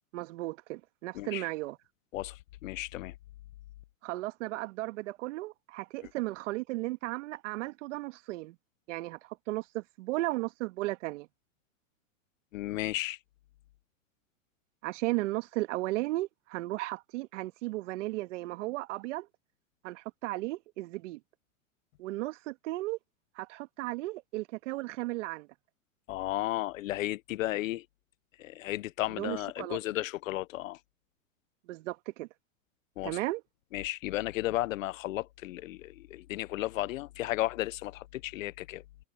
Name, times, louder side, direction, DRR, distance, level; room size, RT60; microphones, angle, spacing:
voice 1, 0.1-1.8 4.0-8.6 8.9-11.3 14.8-19.3 19.8-21.2 22.0-23.0 23.4-25.5 29.1-29.8 31.7-32.3 33.0-33.4, right 19 dB, 60° right, 1.9 m, -35 dB
voice 2, 1.1-1.5 2.1-3.1 6.0-6.1 12.5-13.2 26.1-27.9 28.4-30.8 33.0-33.2 33.7-38.8, left 16 dB, 70° left, 0.8 m, -34 dB
hypercardioid pair, 115°, 40 cm